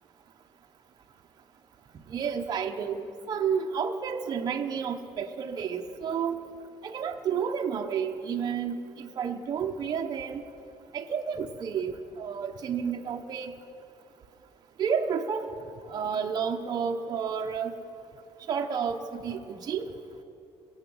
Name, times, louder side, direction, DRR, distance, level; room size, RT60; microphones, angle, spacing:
voice 1, 2.1-6.4 6.8-10.4 10.9-13.5 14.8-15.5 15.9-17.7 18.5-19.9, right 7 dB, 40° right, 3 dB, 0.8 m, -31 dB
23.0 x 8.1 x 7.1 m, 2.8 s
cardioid pair, 165°, 11 cm